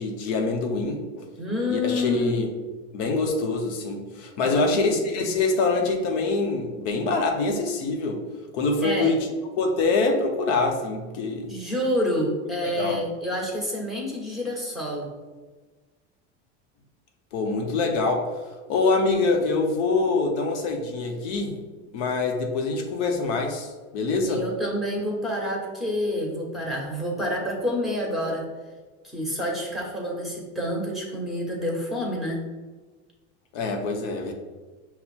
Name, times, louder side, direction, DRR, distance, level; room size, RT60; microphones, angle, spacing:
voice 1, 0.0-1.3 1.7-2.5 2.9-8.2 8.5-9.2 9.6-11.5 12.6-13.0 17.3-18.3 18.7-21.6 21.9-24.4 33.5-34.3, left 3 dB, 65° left, 3 dB, 0.8 m, -25 dB
voice 2, 1.4-2.4 4.4-5.2 8.8-9.2 11.5-15.1 24.3-28.4 29.0-32.4, left 1 dB, ahead, -2 dB, 1.3 m, -28 dB
5.5 x 2.1 x 4.3 m, 1.3 s
supercardioid pair, 105°, 36 cm